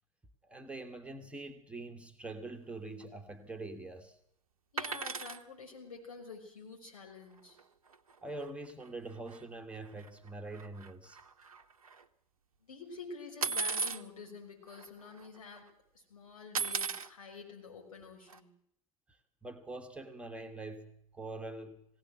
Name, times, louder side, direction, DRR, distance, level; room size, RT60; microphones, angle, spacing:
voice 1, 0.4-4.2 8.2-11.2 19.1-21.9, right 2 dB, 5° right, 4 dB, 1.6 m, -44 dB
voice 2, 4.7-7.6 12.6-15.7 15.9-18.5, left 4 dB, 70° left, 2 dB, 6.2 m, -48 dB
sound 1, 4.8-5.4 7.6-7.7 7.9-8.1 8.4-8.5 9.3-9.4 9.9-12.0 13.4-14.0 14.8-14.9 15.1-15.6 16.5-17.1 18.3-18.4, right 5 dB, 70° right, 1.0 m, -36 dB
20.0 x 17.0 x 7.9 m, 0.73 s
figure-of-eight pair, 90°, 19 cm